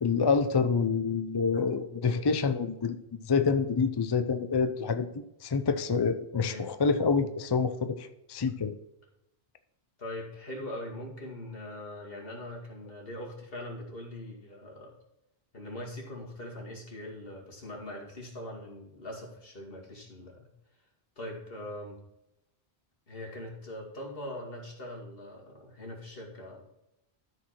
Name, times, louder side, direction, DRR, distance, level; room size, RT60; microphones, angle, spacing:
voice 1, 0.0-3.0 3.2-5.1 5.4-8.8, left 5 dB, 35° left, 9 dB, 0.4 m, -27 dB
voice 2, 10.0-14.9 15.5-20.5 21.2-22.0 23.1-26.6, left 1 dB, 60° left, -1 dB, 2.5 m, -41 dB
13.0 x 4.8 x 4.3 m, 0.87 s
omnidirectional pair, 1.1 m